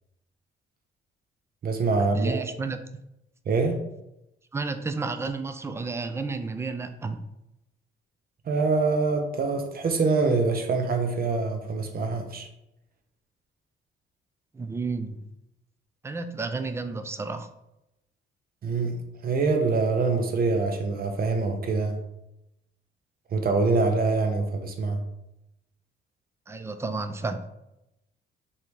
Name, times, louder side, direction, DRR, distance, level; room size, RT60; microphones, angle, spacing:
voice 1, 1.6-2.4 3.5-3.8 8.5-12.5 18.6-19.0 19.2-22.0 23.3-25.0, right 3 dB, 50° right, 5 dB, 0.7 m, -25 dB
voice 2, 2.1-2.8 4.5-7.2 14.5-15.2 16.0-17.5 26.5-27.5, right 4 dB, 15° right, 9 dB, 0.4 m, -31 dB
3.3 x 2.8 x 4.5 m, 0.87 s
cardioid pair, 90°, 20 cm